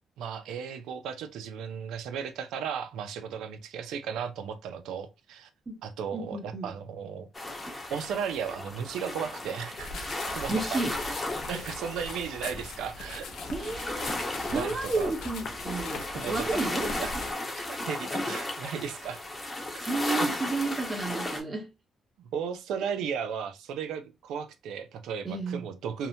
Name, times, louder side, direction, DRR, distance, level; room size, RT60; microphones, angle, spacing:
voice 1, 0.2-5.5 5.8-7.3 7.9-10.8 11.5-13.3 14.5-15.1 16.1-16.6 17.0-17.1 17.5-19.2 19.7-19.9 20.2-20.3 22.3-26.1, right 7 dB, 85° right, 0.4 m, -35 dB
voice 2, 6.1-6.7 10.5-11.0 13.5-14.2 14.5-16.9 19.8-21.7 25.2-25.7, right 3 dB, 30° right, 0.8 m, -31 dB
sound 1, 7.3-21.4, left 2 dB, 20° left, 0.8 m, -35 dB
sound 2, 9.7-17.3, left 3 dB, 75° left, 0.5 m, -41 dB
2.8 x 2.0 x 2.6 m
cardioid pair, 90°, 0 cm